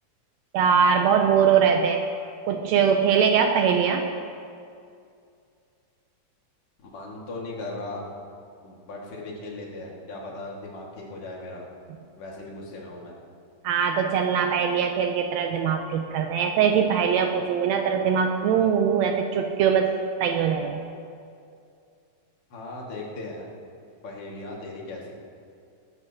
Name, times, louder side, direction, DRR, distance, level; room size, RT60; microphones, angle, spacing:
voice 1, 0.5-2.0 2.4-4.1 13.6-19.9 20.2-20.8, right 7 dB, 85° right, 4 dB, 1.5 m, -22 dB
voice 2, 6.8-8.1 8.6-11.7 12.2-13.2 22.5-23.5 24.0-25.1, left 2 dB, 45° left, -3 dB, 2.7 m, -37 dB
21.5 x 13.0 x 2.9 m, 2.4 s
omnidirectional pair, 3.9 m